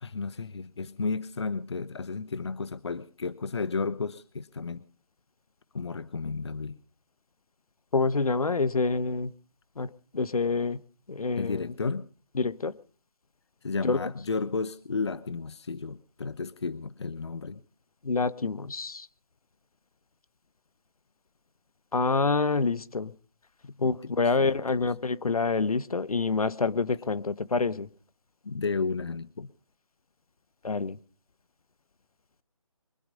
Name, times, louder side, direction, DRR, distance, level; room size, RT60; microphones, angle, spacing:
voice 1, 0.0-4.8 5.7-6.8 11.4-12.1 13.6-17.6 23.6-24.1 24.4-24.6 28.4-29.5, left 4 dB, 45° left, 0.7 m, -33 dB
voice 2, 7.9-9.3 9.8-10.8 11.1-11.7 12.3-12.7 13.8-14.0 18.0-19.1 21.9-23.1 23.8-27.9 30.6-31.0, left 4 dB, 75° left, 1.1 m, -27 dB
23.5 x 12.0 x 5.2 m
figure-of-eight pair, 170°, 19 cm